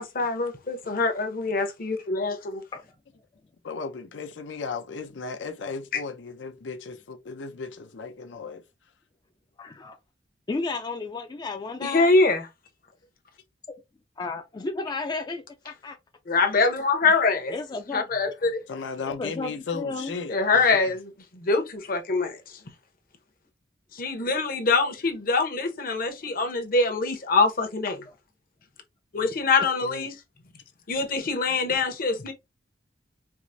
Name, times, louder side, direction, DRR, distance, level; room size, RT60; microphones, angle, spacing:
voice 1, 0.0-2.6 5.9-6.0 11.8-12.5 16.3-17.6 17.9-18.6 20.3-22.4 23.9-28.1 29.1-30.1 30.9-32.3, left 3 dB, 50° left, 0.8 m, -24 dB
voice 2, 3.6-8.6 18.7-20.6 29.8-30.0, left 4 dB, 80° left, 0.6 m, -35 dB
voice 3, 9.6-10.0 10.5-12.1 13.7-13.8 14.2-16.0 17.5-18.1 19.0-20.1 28.1-28.2 31.7-31.8, left 3 dB, 25° left, 0.4 m, -33 dB
4.5 x 2.0 x 2.6 m
head